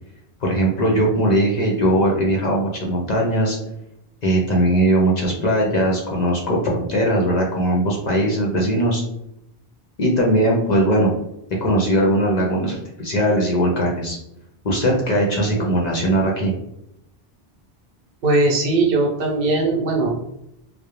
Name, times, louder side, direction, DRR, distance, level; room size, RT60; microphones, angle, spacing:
voice 1, 0.4-3.6 4.2-9.0 10.0-11.1 11.6-14.2 14.6-16.5, right 1 dB, 55° left, -1 dB, 0.5 m, -19 dB
voice 2, 18.2-20.3, right 2 dB, 65° right, -1 dB, 0.8 m, -19 dB
2.3 x 2.0 x 2.9 m, 0.83 s
omnidirectional pair, 1.0 m